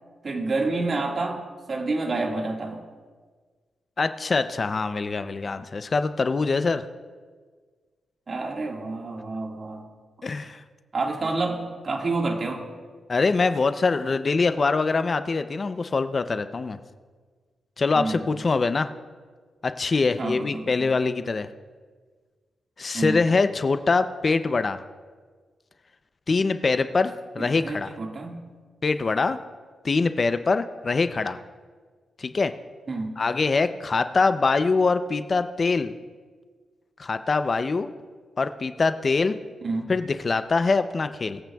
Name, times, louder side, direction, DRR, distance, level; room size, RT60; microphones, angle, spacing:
voice 1, 0.2-1.4 1.7-2.8 8.3-9.9 10.9-12.7 17.9-18.4 20.2-20.9 22.9-23.2 27.4-28.4 32.9-33.2 39.6-39.9, right 3 dB, 45° right, 1 dB, 1.8 m, -29 dB
voice 2, 4.0-6.8 10.2-10.6 13.1-16.8 17.8-18.9 19.6-21.5 22.8-24.8 26.3-27.9 28.8-29.4 29.8-31.4 32.2-32.5 33.2-36.0 37.0-37.9 38.4-39.4 39.9-41.4, left 4 dB, 45° left, 10 dB, 0.5 m, -24 dB
22.5 x 8.8 x 2.3 m, 1.5 s
cardioid pair, 75°, 0 cm